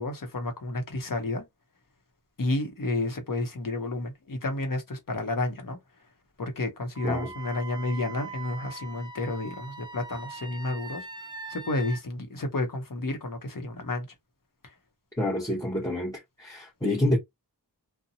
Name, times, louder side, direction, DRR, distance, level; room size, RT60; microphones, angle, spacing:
voice 1, 0.0-1.4 2.4-5.8 6.4-11.1 11.5-14.1 14.6-14.7, left 2 dB, 60° left, 0.8 m, -31 dB
Wind instrument woodwind instrument, 6.9-12.0, right 3 dB, 15° right, 0.4 m, -42 dB
voice 2, 15.1-17.2, left 1 dB, 10° left, 0.8 m, -28 dB
2.7 x 2.1 x 2.7 m
wide cardioid pair, 40°, 37 cm